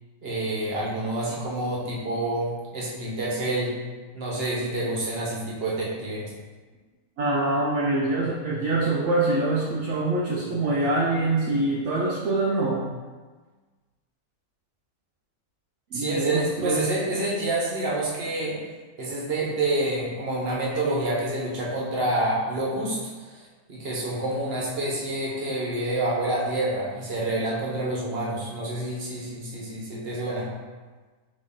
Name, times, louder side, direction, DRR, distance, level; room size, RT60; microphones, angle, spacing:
voice 1, 0.2-3.7 4.1-6.2 15.9-18.6 19.0-23.0 23.3-23.4 23.7-30.5, right 1 dB, 45° right, -5 dB, 1.1 m, -28 dB
voice 2, 7.2-12.9 15.9-16.9, right 2 dB, 65° right, -4 dB, 0.8 m, -24 dB
4.2 x 3.0 x 3.7 m, 1.4 s
omnidirectional pair, 1.6 m